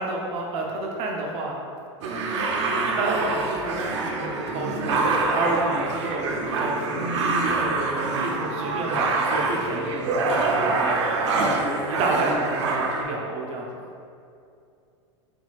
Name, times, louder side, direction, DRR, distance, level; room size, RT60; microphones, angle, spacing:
voice 1, 0.0-1.6 2.8-5.0 5.3-7.1 7.5-10.9 11.4-13.7, right 2 dB, 45° right, -1 dB, 0.7 m, -30 dB
sound 1, 2.0-13.0, right 3 dB, 75° right, 0.6 m, -25 dB
4.6 x 4.0 x 2.4 m, 2.5 s
hypercardioid pair, 105°, 15 cm